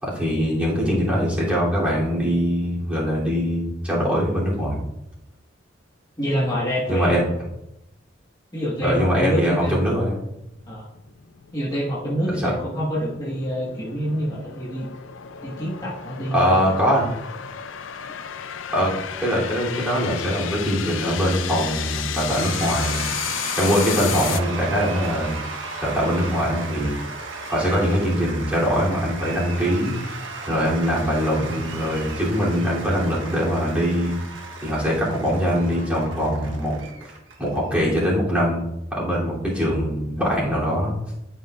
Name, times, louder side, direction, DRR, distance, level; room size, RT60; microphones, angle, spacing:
voice 1, 0.0-4.8 6.9-7.2 8.8-10.2 12.4-12.5 16.3-17.1 18.7-18.9 19.2-23.2 23.6-25.4 25.8-27.0 27.5-29.9 30.5-34.2 34.6-36.8 37.0-37.1 37.4-40.9, equal, 5° right, -7 dB, 3.0 m, -22 dB
voice 2, 6.2-7.2 8.5-9.8 10.7-10.9 11.5-14.9 15.4-16.8, equal, 20° left, -7 dB, 1.5 m, -26 dB
sound 1, 10.2-24.4, left 9 dB, 85° left, 0.5 m, -33 dB
Cheering / Applause / Crowd, 22.2-37.9, right 3 dB, 70° right, 1.4 m, -35 dB
12.0 x 5.6 x 2.5 m, 0.87 s
head